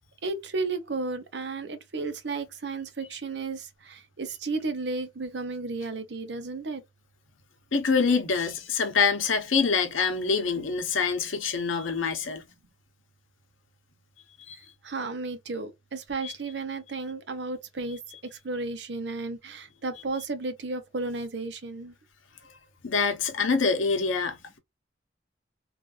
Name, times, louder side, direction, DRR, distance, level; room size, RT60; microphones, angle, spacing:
voice 1, 0.2-6.8 14.5-21.9, right 3 dB, 60° right, 0.7 m, -33 dB
voice 2, 7.7-12.4 14.5-14.6 16.2-16.3 22.8-24.6, left 5 dB, 85° left, 0.9 m, -25 dB
3.2 x 2.4 x 2.5 m
head